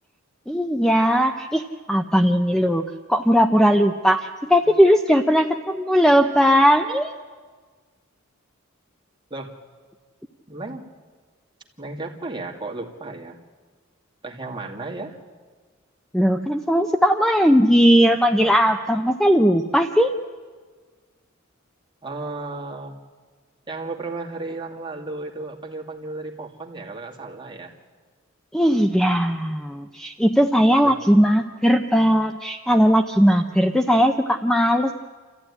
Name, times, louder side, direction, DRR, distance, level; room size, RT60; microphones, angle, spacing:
voice 1, 0.5-7.1 16.1-20.1 28.5-35.0, equal, 5° left, 6 dB, 0.6 m, -18 dB
voice 2, 10.5-10.8 11.8-13.4 14.2-15.2 22.0-22.9 23.7-27.7 30.8-31.0, right 3 dB, 20° right, -1 dB, 2.3 m, -34 dB
28.0 x 14.0 x 9.9 m, 1.5 s
head